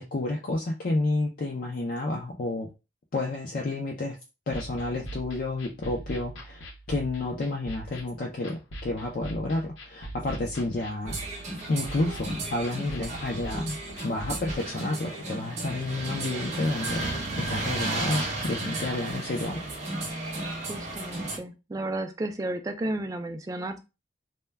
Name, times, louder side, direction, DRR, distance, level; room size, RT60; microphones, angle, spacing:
voice 1, 0.0-2.7 3.1-4.2 4.5-11.2 11.7-19.6, left 2 dB, 50° left, 0 dB, 0.4 m, -30 dB
sound 1, 4.5-14.5, right 1 dB, 85° left, 0.7 m, -41 dB
sound 2, 11.1-21.4, right 2 dB, 40° right, 0.7 m, -34 dB
voice 2, 20.7-23.8, right 1 dB, 20° right, 5 dB, 0.3 m, -33 dB
2.2 x 2.2 x 3.2 m, 0.28 s
head